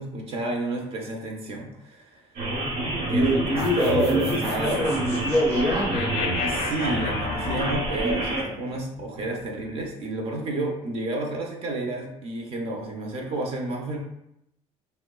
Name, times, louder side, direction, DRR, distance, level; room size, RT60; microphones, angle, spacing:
voice 1, 0.0-2.3 3.1-3.3 3.8-4.9 6.5-14.0, right 2 dB, 50° right, 1 dB, 0.5 m, -30 dB
sound 1, 2.3-8.4, right 1 dB, 80° right, 0.8 m, -29 dB
voice 2, 3.0-6.2, equal, ahead, -3 dB, 0.6 m, -24 dB
sound 2, 3.6-9.9, left 4 dB, 55° left, 0.4 m, -35 dB
2.9 x 2.0 x 2.2 m, 0.81 s
cardioid pair, 125°, 13 cm